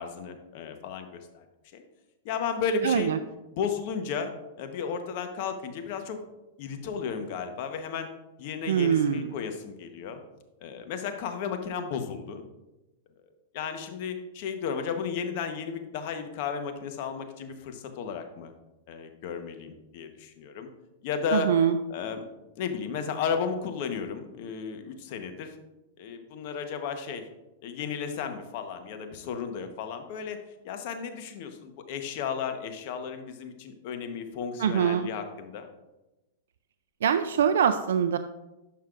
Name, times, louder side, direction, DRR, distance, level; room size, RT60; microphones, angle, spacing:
voice 1, 0.0-1.4 1.7-1.8 2.2-3.1 3.5-4.3 4.6-6.2 6.6-8.1 8.4-10.2 10.6-12.4 13.5-18.5 18.9-20.7 21.0-21.5 21.9-22.3 22.6-25.5 26.0-27.2 27.6-30.4 30.6-35.7, left 6 dB, 55° left, 7 dB, 1.0 m, -34 dB
voice 2, 2.8-3.2 8.7-9.3 21.3-21.8 34.6-35.1 37.0-38.2, right 8 dB, 80° right, 10 dB, 0.3 m, -23 dB
11.5 x 5.6 x 2.5 m, 1.0 s
hypercardioid pair, 135°, 0 cm